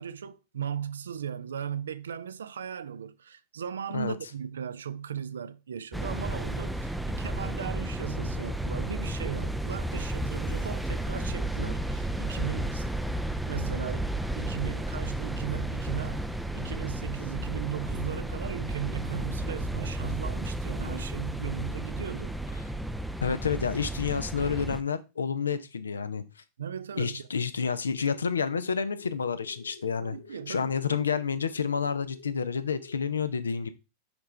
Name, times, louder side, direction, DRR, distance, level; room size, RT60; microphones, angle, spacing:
voice 1, 0.0-12.9 13.5-22.4 26.6-27.5 30.0-30.7, right 8 dB, 65° right, 0.4 m, -37 dB
sound 1, 5.9-24.8, right 1 dB, ahead, 0.4 m, -33 dB
voice 2, 23.2-26.2 27.0-30.2 30.5-33.7, left 6 dB, 70° left, 0.6 m, -29 dB
sound 2, 28.0-32.9, left 3 dB, 90° left, 1.3 m, -50 dB
6.0 x 5.5 x 3.2 m
figure-of-eight pair, 90°, 0 cm